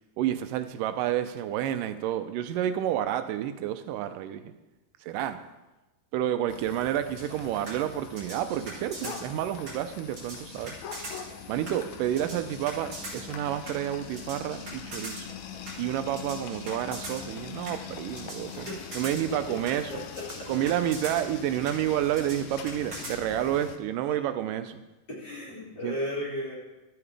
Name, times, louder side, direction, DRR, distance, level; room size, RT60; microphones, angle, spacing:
voice 1, 0.2-4.5 5.0-5.4 6.1-10.8 11.5-15.3 15.8-18.7 18.9-20.0 20.5-24.8 25.8-26.0, right 11 dB, 90° right, 10 dB, 2.2 m, -30 dB
sound 1, 6.5-23.8, left 8 dB, 75° left, 1.8 m, -43 dB
sound 2, 7.2-23.2, right 2 dB, 45° right, 4.3 m, -42 dB
voice 2, 19.7-20.5 25.1-26.6, equal, 35° left, -5 dB, 2.6 m, -35 dB
13.5 x 8.6 x 3.4 m, 1.0 s
omnidirectional pair, 3.7 m